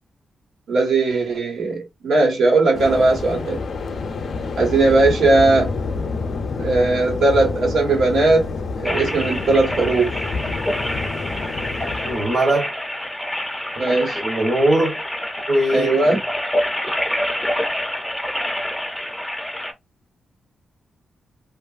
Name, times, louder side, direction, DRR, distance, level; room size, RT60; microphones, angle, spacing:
voice 1, 0.7-3.6 4.6-5.7 6.6-8.5 8.8-10.1 13.8-14.2 15.7-16.2, right 2 dB, 85° right, 1.2 m, -18 dB
Waves surf, 2.7-12.4, left 4 dB, 50° left, 0.5 m, -28 dB
sound 1, 8.8-19.7, left 1 dB, 5° left, 0.5 m, -27 dB
voice 2, 12.0-12.8 14.2-15.0 15.5-16.2, right 1 dB, 50° right, 1.0 m, -20 dB
2.9 x 2.3 x 2.4 m
wide cardioid pair, 180°, 0 cm